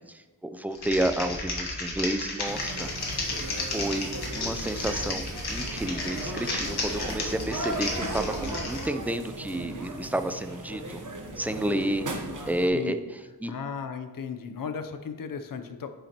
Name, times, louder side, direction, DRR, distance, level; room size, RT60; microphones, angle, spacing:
voice 1, 0.1-2.9 3.3-11.0 11.4-13.5, right 1 dB, 5° right, 9 dB, 0.3 m, -31 dB
Typing, 0.7-8.9, left 2 dB, 75° left, 1.4 m, -33 dB
sound 1, 2.4-12.7, right 2 dB, 50° right, 0.9 m, -37 dB
voice 2, 13.5-15.9, left 6 dB, 55° left, 8 dB, 0.6 m, -35 dB
8.4 x 5.7 x 2.9 m, 1.2 s
wide cardioid pair, 100°, 39 cm